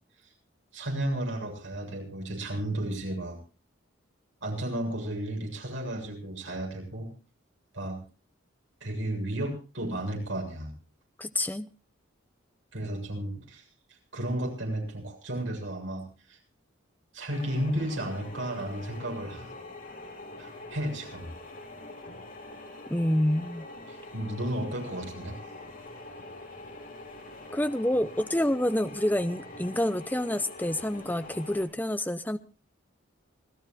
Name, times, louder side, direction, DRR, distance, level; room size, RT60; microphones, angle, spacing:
voice 1, 0.7-3.4 4.4-7.1 7.7-8.0 8.8-10.7 12.7-13.6 14.1-16.4 17.1-19.5 20.4-21.3 23.9-25.3, right 1 dB, 70° right, 1 dB, 7.1 m, -33 dB
voice 2, 11.2-11.7 22.9-23.6 27.5-32.4, left 1 dB, 10° left, 11 dB, 0.7 m, -28 dB
sound 1, 17.3-31.7, left 2 dB, 45° left, 6.2 m, -44 dB
27.0 x 15.5 x 2.6 m, 0.35 s
head